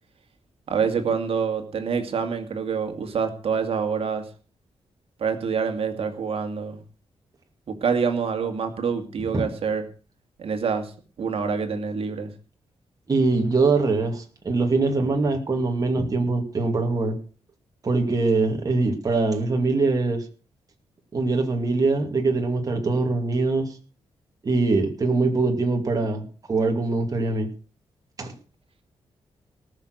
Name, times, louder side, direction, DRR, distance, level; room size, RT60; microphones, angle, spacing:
voice 1, 0.7-4.2 5.2-6.8 7.7-9.8 10.4-10.9 11.2-12.3, right 6 dB, 65° right, 6 dB, 2.4 m, -26 dB
voice 2, 13.1-17.2 17.8-20.2 21.1-23.7 24.4-27.5 28.2-28.3, right 3 dB, 35° right, 3 dB, 2.5 m, -23 dB
18.5 x 6.6 x 6.5 m, 0.38 s
wide cardioid pair, 125°, 11 cm